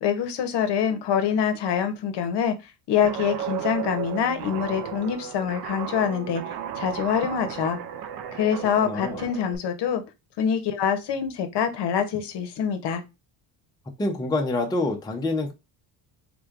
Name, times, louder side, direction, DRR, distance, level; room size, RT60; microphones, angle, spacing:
voice 1, 0.0-2.5 2.9-6.4 6.8-7.8 8.3-10.0 10.4-13.0, left 8 dB, 55° left, 0.9 m, -25 dB
Guitar, 3.0-9.6, right 9 dB, 45° right, 0.5 m, -34 dB
voice 2, 8.8-9.2 14.0-15.5, left 2 dB, 10° left, 0.6 m, -26 dB
3.7 x 3.2 x 2.5 m
supercardioid pair, 95°, 50 cm